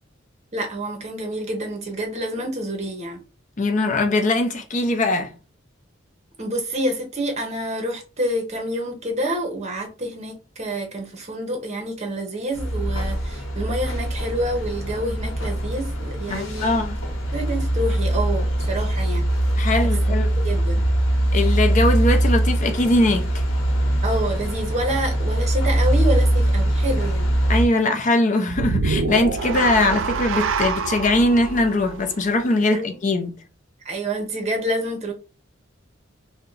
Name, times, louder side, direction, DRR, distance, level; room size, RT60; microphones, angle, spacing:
voice 1, 0.5-3.2 6.4-16.8 17.3-19.3 20.1-20.8 24.0-27.3 32.6-32.9 33.8-35.1, right 1 dB, 35° right, 0.9 m, -28 dB
voice 2, 3.6-5.3 16.3-17.0 19.6-20.3 21.3-23.3 27.5-33.3, left 2 dB, 40° left, 0.5 m, -21 dB
sound 1, 12.5-27.7, right 1 dB, 85° left, 0.9 m, -22 dB
sound 2, 28.5-32.8, right 4 dB, 80° right, 0.4 m, -26 dB
2.8 x 2.2 x 3.8 m
head